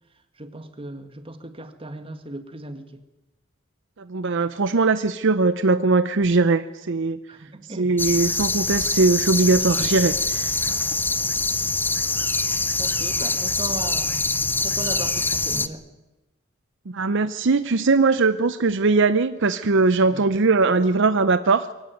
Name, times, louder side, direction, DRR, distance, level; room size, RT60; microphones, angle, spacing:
voice 1, 0.4-3.0 7.3-7.9 12.8-14.3 14.6-15.8 20.1-20.2, right 1 dB, 25° right, 8 dB, 1.9 m, -37 dB
voice 2, 4.0-7.2 7.8-10.6 16.9-21.7, right 3 dB, 60° right, 12 dB, 0.7 m, -20 dB
sound 1, 8.0-15.7, left 3 dB, 10° left, 0.7 m, -24 dB
22.5 x 16.5 x 9.2 m, 1.0 s
head